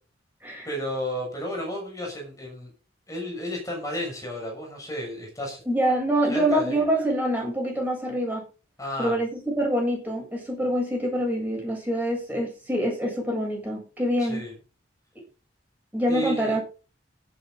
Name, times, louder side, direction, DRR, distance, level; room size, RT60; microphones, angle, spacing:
voice 1, 0.6-2.7 3.1-5.6 6.3-6.8 8.8-9.2 14.2-14.5 16.1-16.6, equal, 15° left, 0 dB, 6.5 m, -32 dB
voice 2, 5.7-8.4 9.0-14.4 15.9-16.6, equal, 10° right, -1 dB, 7.9 m, -25 dB
17.0 x 8.9 x 4.0 m, 0.33 s
head